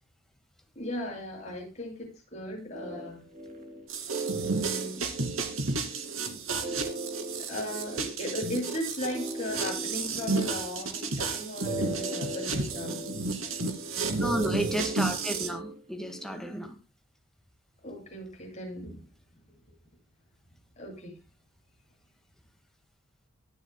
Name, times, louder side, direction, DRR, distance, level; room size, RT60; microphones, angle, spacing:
voice 1, 0.7-3.2 4.4-5.6 7.4-13.0 17.8-19.0 19.3-19.4 20.8-21.2, left 1 dB, 35° left, -1 dB, 7.8 m, -37 dB
sound 1, 2.7-16.5, right 2 dB, 35° right, 3.3 m, -38 dB
sound 2, 3.9-15.5, right 3 dB, 80° right, 2.6 m, -32 dB
voice 2, 14.1-16.8, equal, ahead, 4 dB, 1.8 m, -32 dB
24.0 x 8.3 x 2.3 m, 0.30 s
head